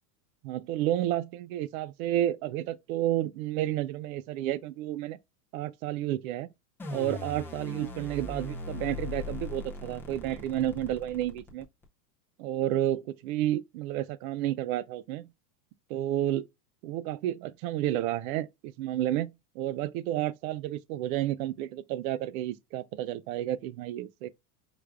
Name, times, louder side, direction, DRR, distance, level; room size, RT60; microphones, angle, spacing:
voice 1, 0.4-5.2 5.5-6.5 6.9-11.7 12.4-15.3 15.9-16.5 16.8-24.3, right 13 dB, 65° right, 0.5 m, -31 dB
sound 1, 6.8-11.8, left 3 dB, 5° left, 0.4 m, -39 dB
4.9 x 2.4 x 3.3 m
supercardioid pair, 135°, 47 cm